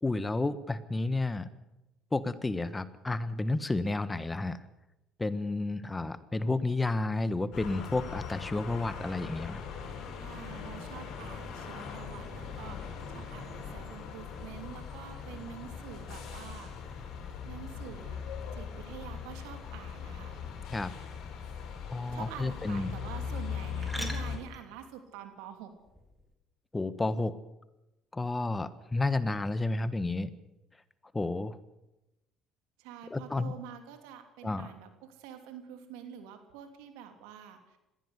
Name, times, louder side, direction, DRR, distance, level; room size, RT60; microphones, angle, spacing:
voice 1, 0.0-1.5 2.1-4.6 5.2-9.6 20.7-20.9 21.9-22.9 26.7-27.3 28.1-30.3 31.1-31.6 33.1-33.5 34.4-34.7, left 2 dB, 20° left, 14 dB, 1.4 m, -31 dB
sound 1, 7.5-24.4, left 6 dB, 65° left, 6.2 m, -40 dB
voice 2, 10.2-16.7 17.4-18.2 18.5-20.4 22.1-25.7 32.8-37.8, right 9 dB, 80° right, 6 dB, 3.0 m, -47 dB
sound 2, 17.2-26.4, equal, ahead, 4.2 m, -51 dB
21.0 x 15.5 x 8.2 m, 0.95 s
hypercardioid pair, 70°, 0 cm